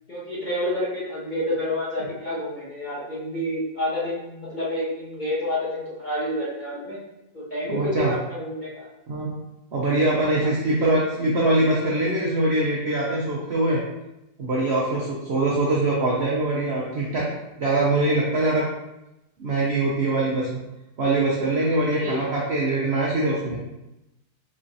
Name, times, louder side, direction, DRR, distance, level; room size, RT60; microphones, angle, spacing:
voice 1, 0.1-7.0 7.3-8.8 10.3-10.5 21.9-22.2, left 1 dB, 40° left, -9 dB, 0.7 m, -29 dB
voice 2, 7.7-8.1 9.1-9.3 9.7-13.8 14.4-17.3 17.6-18.7 19.4-20.6 21.0-23.6, right 2 dB, 75° right, -4 dB, 0.6 m, -23 dB
4.2 x 3.2 x 2.6 m, 0.93 s
omnidirectional pair, 1.9 m